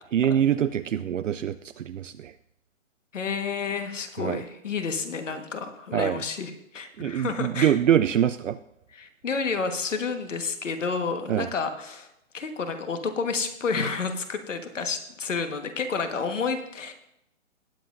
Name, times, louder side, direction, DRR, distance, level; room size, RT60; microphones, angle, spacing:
voice 1, 0.1-2.3 4.2-4.4 5.9-6.2 7.0-8.6 11.3-11.5, right 10 dB, 65° right, 11 dB, 0.5 m, -24 dB
voice 2, 3.1-7.8 8.9-12.1 12.3-16.9, left 5 dB, 65° left, 7 dB, 1.5 m, -30 dB
19.0 x 7.6 x 2.6 m, 0.82 s
hypercardioid pair, 170°, 40 cm